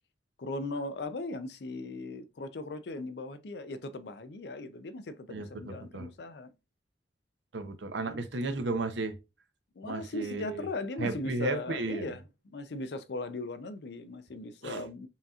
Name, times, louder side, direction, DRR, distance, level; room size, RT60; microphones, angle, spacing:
voice 1, 0.4-6.5 8.0-8.2 9.8-12.2 12.5-15.1, left 2 dB, 60° left, 0.5 m, -38 dB
voice 2, 5.3-6.1 7.5-9.2 9.8-10.7 11.0-12.1 14.6-14.8, right 3 dB, 75° right, 0.7 m, -34 dB
5.6 x 2.7 x 2.4 m
head